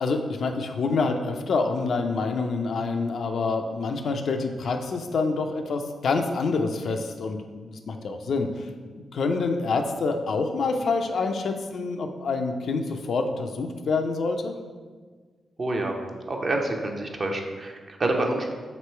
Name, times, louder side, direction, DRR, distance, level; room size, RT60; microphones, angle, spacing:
voice 1, 0.0-14.6, left 4 dB, 70° left, 5 dB, 0.4 m, -27 dB
voice 2, 15.6-15.9 16.3-18.5, right 2 dB, 50° right, 2 dB, 0.6 m, -27 dB
3.0 x 3.0 x 4.3 m, 1.5 s
supercardioid pair, 45°, 0 cm